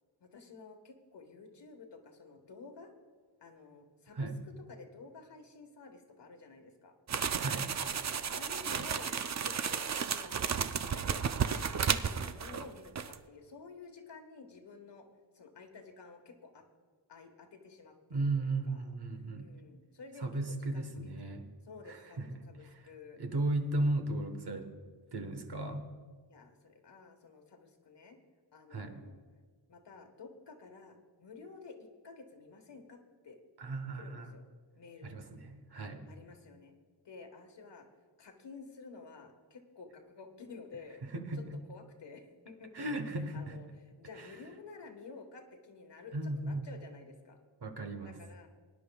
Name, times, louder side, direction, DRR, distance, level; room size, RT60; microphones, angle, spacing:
voice 1, 0.2-2.9 3.4-4.3 4.7-6.9 8.3-9.1 9.4-10.5 10.8-15.1 15.3-16.6 17.1-18.8 19.4-20.4 20.7-21.3 21.6-23.2 26.3-28.2 28.5-29.1 29.7-33.4 34.0-34.5 34.8-35.4 36.1-36.7 37.0-37.9 38.2-41.0 41.7-43.7 44.0-47.4 48.0-48.5, left 4 dB, 65° left, 5 dB, 1.4 m, -52 dB
sound 1, 7.1-12.7 13.0-13.2, right 7 dB, 40° right, 0.4 m, -33 dB
voice 2, 7.4-7.7 18.1-19.4 20.2-21.4 21.9-22.8 23.2-24.7 25.1-25.9 28.7-29.0 33.6-34.3 35.0-36.1 41.0-41.4 42.7-43.6 44.2-44.3 46.1-46.6 47.6-48.2, right 2 dB, 60° right, 6 dB, 1.2 m, -36 dB
22.0 x 10.5 x 2.3 m, 1.5 s
wide cardioid pair, 105°, 45 cm